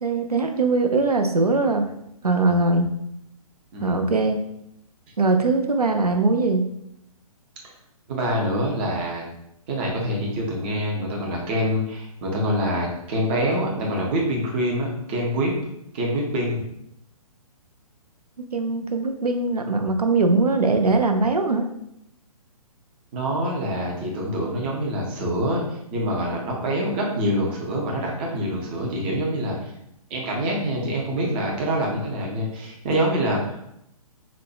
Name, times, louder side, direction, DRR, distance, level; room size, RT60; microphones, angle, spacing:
voice 1, 0.0-1.9 2.2-2.9 3.8-4.4 5.2-6.7 18.5-21.7, right 3 dB, 90° right, 5 dB, 0.4 m, -21 dB
voice 2, 8.1-9.2 9.7-15.5 15.9-16.7 23.1-29.7 30.1-33.6, equal, 15° right, -2 dB, 0.4 m, -25 dB
4.1 x 2.1 x 2.4 m, 0.78 s
figure-of-eight pair, 130°, 19 cm